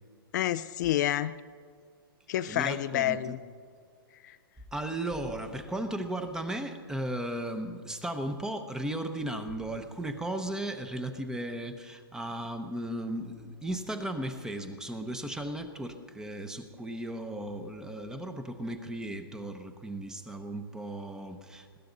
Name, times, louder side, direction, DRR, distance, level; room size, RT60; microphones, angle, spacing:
voice 1, 0.3-1.4 2.3-3.4 4.2-4.4, left 13 dB, 50° left, 13 dB, 0.4 m, -29 dB
voice 2, 2.5-3.4 4.7-21.8, right 1 dB, 5° right, 8 dB, 0.8 m, -36 dB
20.0 x 16.5 x 4.0 m, 2.1 s
hypercardioid pair, 150°, 13 cm